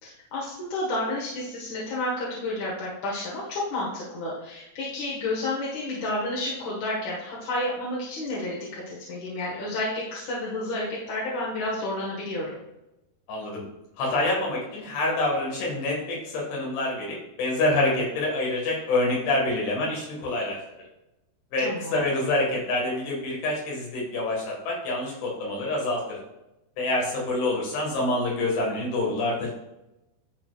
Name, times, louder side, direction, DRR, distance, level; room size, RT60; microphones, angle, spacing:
voice 1, 0.0-12.6 21.6-22.0, left 1 dB, 55° left, -6 dB, 2.3 m, -31 dB
voice 2, 13.3-13.6 14.0-20.6 21.5-26.2 26.8-29.5, left 2 dB, 80° left, -3 dB, 4.0 m, -26 dB
13.0 x 4.5 x 2.4 m, 0.92 s
omnidirectional pair, 4.7 m